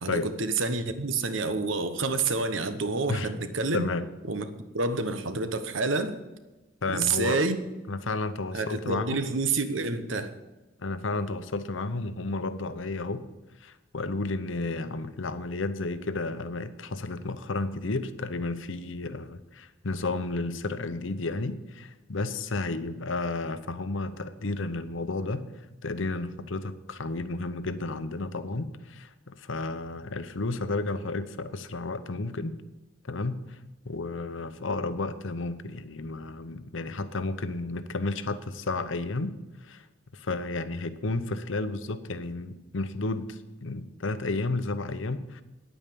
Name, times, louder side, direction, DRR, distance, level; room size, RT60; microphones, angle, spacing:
voice 1, 0.0-3.9 4.3-6.2 6.9-7.6 8.5-10.3, right 3 dB, 80° right, 10 dB, 1.1 m, -28 dB
voice 2, 3.7-4.1 6.8-7.4 7.9-9.3 10.8-13.3 13.6-25.5 25.8-32.6 33.1-33.6 33.8-39.3 39.6-39.8 40.1-45.4, left 3 dB, 80° left, 12 dB, 0.8 m, -32 dB
9.8 x 9.0 x 6.9 m, 1.1 s
head